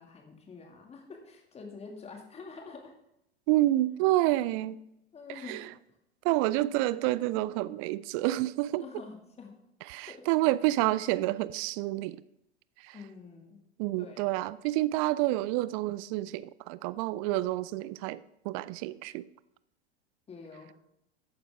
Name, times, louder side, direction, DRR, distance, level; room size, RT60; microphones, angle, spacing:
voice 1, 0.0-2.9 5.1-5.7 8.8-9.6 10.1-10.3 12.9-13.6 14.0-14.3 20.3-20.7, left 4 dB, 20° left, 3 dB, 2.2 m, -46 dB
voice 2, 3.5-4.8 5.5-5.6 6.2-8.8 9.9-12.2 12.8-12.9 13.8-18.2 18.4-19.2, right 16 dB, 35° right, 18 dB, 0.4 m, -28 dB
14.0 x 9.1 x 3.5 m, 0.83 s
figure-of-eight pair, 85°, 33 cm